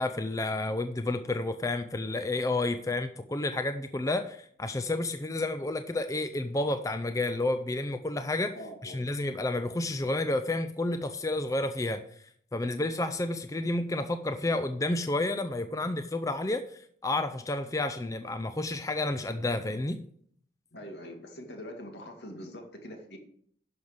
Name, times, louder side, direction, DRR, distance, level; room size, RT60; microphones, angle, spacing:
voice 1, 0.0-8.6 8.8-12.0 12.5-20.0, left 2 dB, 20° left, 9 dB, 0.4 m, -30 dB
voice 2, 8.5-9.0 20.7-23.2, equal, 75° left, 3 dB, 2.0 m, -43 dB
11.0 x 6.3 x 5.1 m, 0.63 s
head